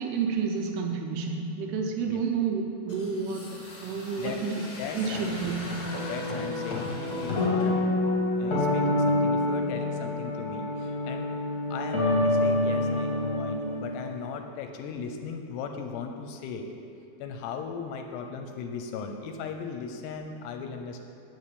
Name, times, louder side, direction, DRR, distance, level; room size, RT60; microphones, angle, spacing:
voice 1, 0.0-4.7 4.9-5.9, right 5 dB, 80° right, 3 dB, 2.5 m, -30 dB
sound 1, 2.9-7.7, left 2 dB, 60° left, 1.1 m, -39 dB
voice 2, 4.8-5.6 6.0-7.8 8.4-11.3 11.7-16.7 17.2-21.1, left 6 dB, 80° left, 5 dB, 2.5 m, -37 dB
sound 2, 5.8-14.2, left 2 dB, 40° left, 1.4 m, -27 dB
7.7 x 7.4 x 8.1 m, 2.7 s
omnidirectional pair, 5.1 m